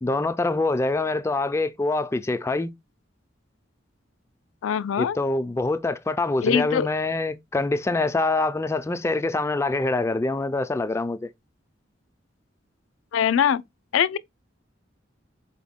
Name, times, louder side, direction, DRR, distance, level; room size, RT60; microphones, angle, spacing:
voice 1, 0.0-2.7 5.0-11.3, left 2 dB, 15° left, 0.3 m, -25 dB
voice 2, 4.6-5.2 6.4-6.9 13.1-13.6 13.9-14.2, left 8 dB, 90° left, 0.4 m, -22 dB
4.9 x 2.1 x 3.5 m
head